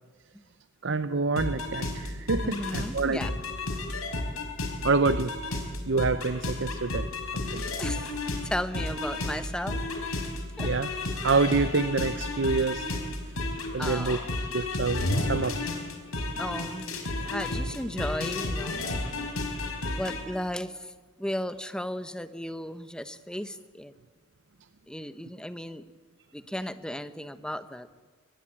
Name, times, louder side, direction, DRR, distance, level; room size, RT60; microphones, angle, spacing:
voice 1, 0.8-3.2 4.8-5.3 5.9-7.1 7.3-7.6 10.6-10.9 11.2-12.9 13.7-14.2 14.5-15.5, right 4 dB, 60° right, 0.7 m, -27 dB
sound 1, 1.4-20.2, left 2 dB, 85° left, 4.8 m, -32 dB
voice 2, 2.4-3.4 7.8-8.1 8.4-9.8 10.6-10.7 13.8-14.2 16.4-16.9 17.2-18.8 20.0-20.9 21.2-23.9 24.9-25.8 26.3-27.9, equal, 5° left, 0.9 m, -35 dB
23.5 x 20.0 x 8.8 m
head